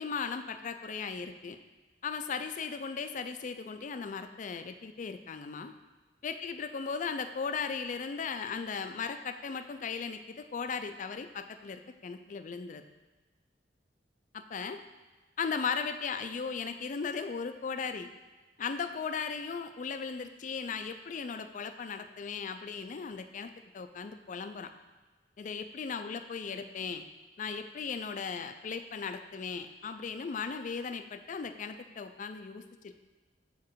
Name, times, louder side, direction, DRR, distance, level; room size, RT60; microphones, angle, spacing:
voice 1, 0.0-1.6 2.0-5.7 6.2-12.8 14.3-14.8 15.4-18.1 18.6-24.7 25.4-27.1 27.4-32.9, left 5 dB, 45° left, 9 dB, 0.4 m, -37 dB
7.2 x 4.8 x 4.5 m, 1.3 s
head